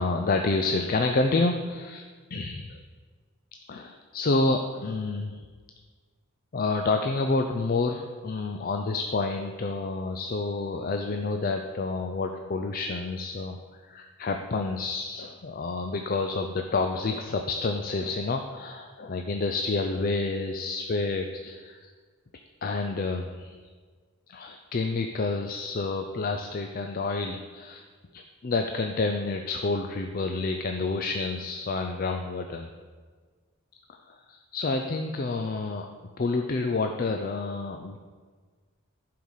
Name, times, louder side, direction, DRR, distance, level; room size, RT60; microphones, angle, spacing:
voice 1, 0.0-2.0 2.3-2.8 3.7-5.4 6.5-21.9 22.6-23.6 24.3-27.8 28.1-32.7 33.9-35.9 36.2-38.0, left 3 dB, 40° left, 5 dB, 0.5 m, -29 dB
11.0 x 4.8 x 5.5 m, 1.5 s
head